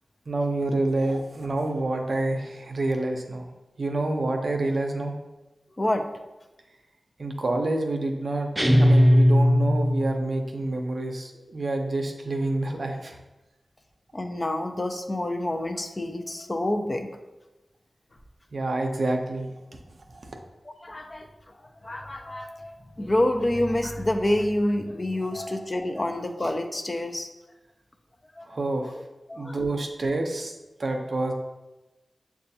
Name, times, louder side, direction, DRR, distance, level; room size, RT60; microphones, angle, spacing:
voice 1, 0.3-3.5 3.8-5.2 7.2-8.5 8.8-13.2 18.5-19.5 20.1-20.4 25.2-25.6 28.4-28.9 29.3-30.5 30.8-31.3, right 2 dB, 70° right, 3 dB, 0.5 m, -28 dB
sound 1, 8.6-10.3, equal, 15° right, 0.6 m, -18 dB
voice 2, 14.1-17.1 20.8-21.3 21.8-27.3 28.4-28.6 29.3-29.6, left 1 dB, 40° left, 5 dB, 0.5 m, -27 dB
6.7 x 2.4 x 2.7 m, 1.1 s
cardioid pair, 45°, 0 cm